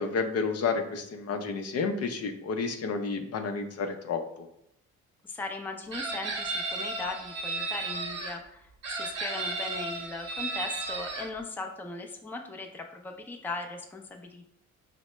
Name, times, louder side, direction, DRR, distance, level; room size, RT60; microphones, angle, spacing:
voice 1, 0.0-4.5, left 4 dB, 55° left, 6 dB, 0.5 m, -31 dB
voice 2, 5.2-14.5, left 3 dB, 5° left, 3 dB, 0.4 m, -38 dB
Chicken rooster, 5.9-8.3 8.8-11.3, right 3 dB, 60° right, 0.8 m, -34 dB
5.4 x 2.1 x 3.1 m, 0.76 s
cardioid pair, 90°, 30 cm